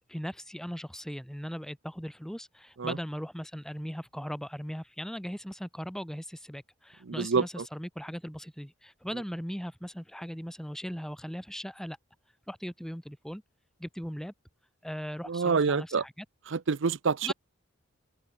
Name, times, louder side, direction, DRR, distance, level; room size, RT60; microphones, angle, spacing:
voice 1, 0.1-12.0 12.5-13.4 13.8-14.3 14.8-16.2 17.2-17.3, equal, ahead, 2.8 m, -38 dB
voice 2, 7.1-7.6 15.3-16.0 16.5-17.3, right 5 dB, 65° right, 0.6 m, -27 dB
open air
head